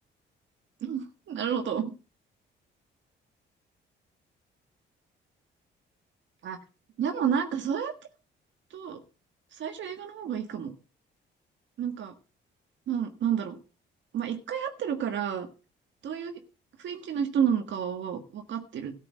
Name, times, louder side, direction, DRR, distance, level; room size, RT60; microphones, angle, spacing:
voice 1, 0.8-1.9 6.4-6.6 7.0-7.9 8.7-9.0 9.5-10.7 11.8-12.1 12.9-13.6 14.1-15.5 16.0-16.4 16.8-18.9, right 8 dB, 70° right, 5 dB, 1.6 m, -30 dB
13.5 x 6.7 x 6.2 m, 0.34 s
cardioid pair, 90°, 20 cm